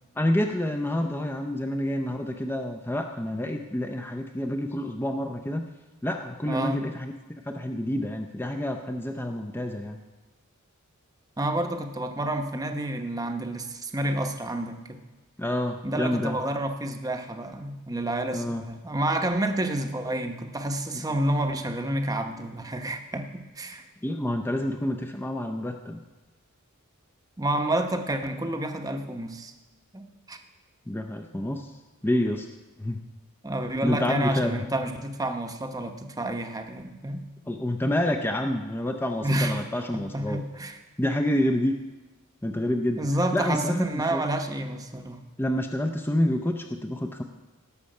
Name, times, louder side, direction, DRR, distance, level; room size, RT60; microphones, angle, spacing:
voice 1, 0.2-5.7 6.0-7.1 7.4-10.0 15.4-16.4 18.3-18.6 24.0-26.0 30.9-31.7 32.0-32.5 32.8-33.0 33.8-34.7 37.5-40.4 41.0-41.8 42.4-43.1 43.3-44.2 45.4-47.2, left 1 dB, 10° left, 5 dB, 0.5 m, -28 dB
voice 2, 6.5-6.8 11.4-15.0 15.8-23.8 27.4-29.5 29.9-30.4 33.4-37.2 39.2-39.6 39.9-40.8 43.0-45.2, right 1 dB, 15° right, 5 dB, 0.9 m, -29 dB
18.0 x 6.9 x 5.5 m, 1.1 s
head